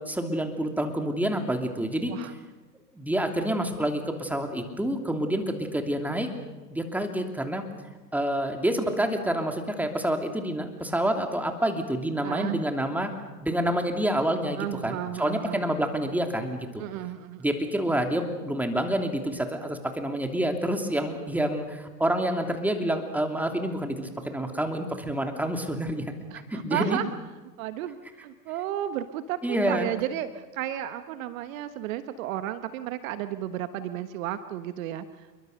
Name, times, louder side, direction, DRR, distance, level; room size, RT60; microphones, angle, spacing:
voice 1, 0.0-2.1 3.0-6.3 6.7-7.6 8.1-13.1 13.4-16.8 17.4-26.0 26.5-27.0 29.4-29.9, right 1 dB, 5° right, 4 dB, 3.0 m, -28 dB
voice 2, 12.2-12.6 14.6-15.6 16.8-17.4 26.3-27.1 27.6-35.4, right 12 dB, 55° right, 11 dB, 1.3 m, -33 dB
28.0 x 23.0 x 6.6 m, 1.2 s
hypercardioid pair, 105°, 49 cm